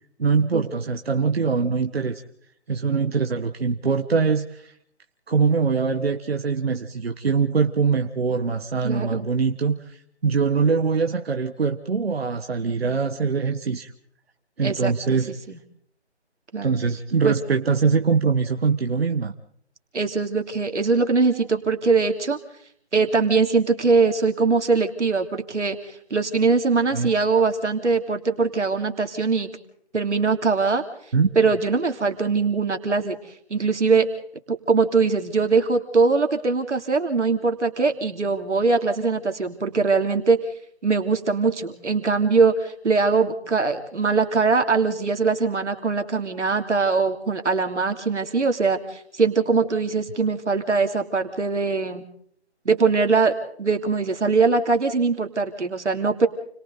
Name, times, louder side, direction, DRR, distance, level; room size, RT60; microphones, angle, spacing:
voice 1, 0.2-2.2 2.7-4.7 5.3-13.9 14.6-15.3 16.6-19.3 26.9-27.1 31.1-31.4, right 5 dB, 60° right, 5 dB, 1.5 m, -23 dB
voice 2, 8.8-9.2 14.6-14.9 15.5-15.6 16.5-16.8 17.2-17.3 19.9-22.4 22.9-29.5 29.9-30.8 31.3-33.2 33.5-34.1 34.5-40.4 40.8-52.0 52.6-56.3, right 4 dB, 90° right, 5 dB, 3.0 m, -22 dB
29.5 x 23.5 x 4.0 m, 0.65 s
hypercardioid pair, 170°, 34 cm